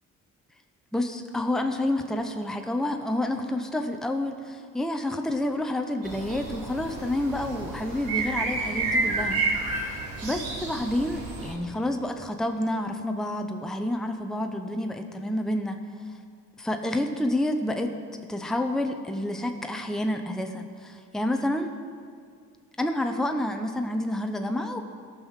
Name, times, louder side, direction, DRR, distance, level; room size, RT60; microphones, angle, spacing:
voice 1, 0.9-9.4 9.8-9.9 10.2-15.8 16.6-21.7 22.8-24.8, left 1 dB, ahead, 5 dB, 0.7 m, -29 dB
sound 1, 6.0-11.5, right 3 dB, 80° right, 3.4 m, -30 dB
14.0 x 5.7 x 6.4 m, 2.1 s
cardioid pair, 80°, 34 cm